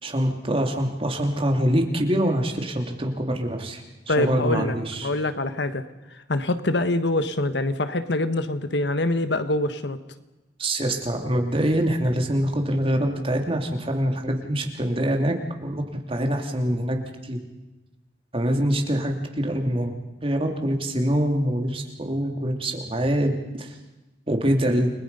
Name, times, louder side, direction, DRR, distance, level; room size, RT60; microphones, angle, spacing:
voice 1, 0.0-5.1 10.6-15.3 15.6-15.8 16.1-17.4 18.3-19.9 20.2-23.7 24.3-24.9, equal, 30° right, 3 dB, 2.8 m, -24 dB
voice 2, 4.1-4.8 5.0-5.8 6.3-10.0, left 2 dB, 75° left, 10 dB, 1.3 m, -24 dB
29.5 x 21.0 x 5.5 m, 1.1 s
head